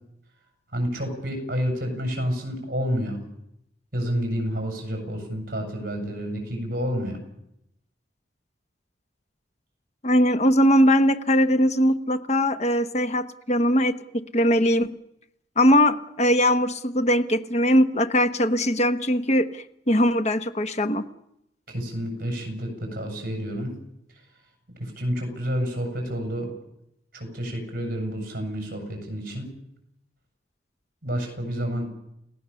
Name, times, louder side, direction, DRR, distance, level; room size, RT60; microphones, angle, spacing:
voice 1, 0.7-3.2 3.9-7.2 21.7-23.7 24.8-26.5 27.1-29.5 31.0-31.9, equal, 55° right, 4 dB, 7.4 m, -29 dB
voice 2, 10.0-13.9 14.3-14.9 15.6-21.0, equal, 40° left, 10 dB, 1.2 m, -20 dB
30.0 x 17.0 x 7.1 m, 0.82 s
head